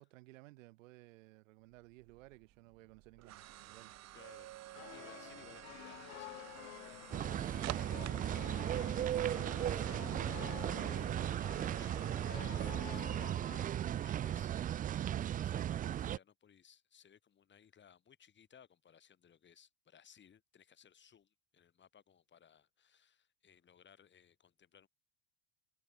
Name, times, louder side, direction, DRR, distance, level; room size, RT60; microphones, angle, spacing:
voice 1, 0.0-4.0, right 20 dB, 75° right, 7.0 m, -58 dB
sound 1, 1.8-14.8, right 15 dB, 40° right, 2.6 m, -52 dB
voice 2, 4.1-24.9, left 8 dB, 30° left, 6.2 m, -63 dB
sound 2, 4.7-13.7, left 22 dB, 70° left, 4.6 m, -51 dB
sound 3, 7.1-16.2, right 11 dB, 20° right, 0.5 m, -36 dB
supercardioid pair, 115°, 39 cm